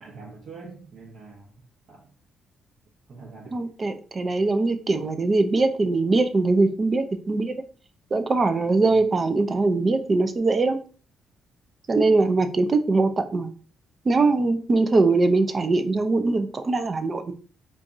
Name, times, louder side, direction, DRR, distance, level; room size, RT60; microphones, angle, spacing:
voice 1, 0.0-1.5 1.9-2.1 3.1-3.6 8.8-9.0, right 4 dB, 60° right, 1.1 m, -44 dB
voice 2, 3.5-7.5 8.1-10.8 11.9-13.5 14.1-17.3, right 3 dB, 35° right, 0.5 m, -22 dB
4.5 x 2.4 x 2.6 m
cardioid pair, 90°, 0 cm